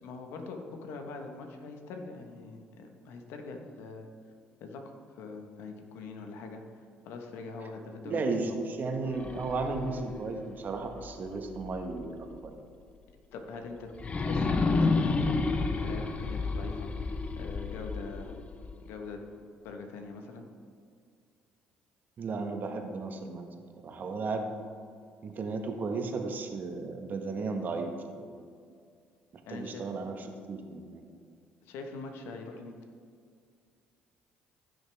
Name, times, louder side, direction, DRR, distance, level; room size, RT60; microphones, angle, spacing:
voice 1, 0.0-4.1 4.6-4.8 5.1-8.3 13.3-13.9 14.2-16.9 17.3-18.4 18.8-19.2 19.6-20.5 29.5-29.8 31.6-32.8, left 4 dB, 75° left, 4 dB, 1.2 m, -43 dB
voice 2, 8.0-12.2 12.4-12.5 22.2-23.5 23.8-24.5 25.2-28.4 29.5-31.0, right 3 dB, 50° right, 4 dB, 1.4 m, -34 dB
sound 1, 9.0-12.0 12.5-12.6 13.9-19.0, left 3 dB, 35° left, 0.9 m, -31 dB
15.5 x 6.4 x 3.5 m, 2.2 s
supercardioid pair, 65°, 4 cm